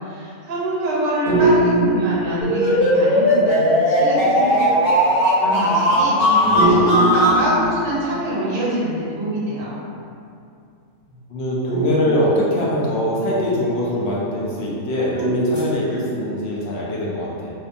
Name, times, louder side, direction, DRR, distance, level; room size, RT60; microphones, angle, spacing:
voice 1, 0.0-9.8, right 1 dB, 50° right, -7 dB, 0.7 m, -25 dB
sound 1, 1.3-3.0 6.5-8.4 11.7-13.2 15.1-16.3, right 2 dB, 30° left, 0.8 m, -22 dB
sound 2, 2.4-7.4, equal, 90° left, 1.4 m, -17 dB
voice 2, 6.4-6.9 11.3-17.5, equal, 65° left, -5 dB, 0.6 m, -23 dB
2.6 x 2.3 x 2.5 m, 2.5 s
omnidirectional pair, 1.5 m